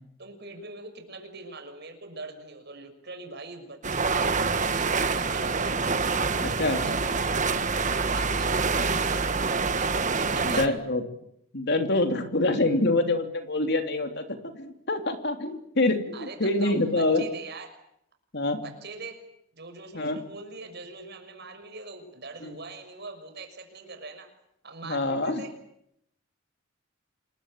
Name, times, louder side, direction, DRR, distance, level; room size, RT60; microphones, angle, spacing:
voice 1, 0.2-5.8 6.3-10.8 16.1-17.7 18.6-19.2 19.6-24.3 24.6-25.5, right 3 dB, 55° right, 6 dB, 6.3 m, -42 dB
sound 1, 3.8-10.7, right 4 dB, 40° right, 1.5 m, -26 dB
voice 2, 6.4-6.8 10.4-11.0 11.5-17.2 18.3-18.6 19.9-20.2 22.4-22.6 24.8-25.4, left 2 dB, 55° left, 6 dB, 3.2 m, -26 dB
27.5 x 21.5 x 9.1 m, 0.76 s
head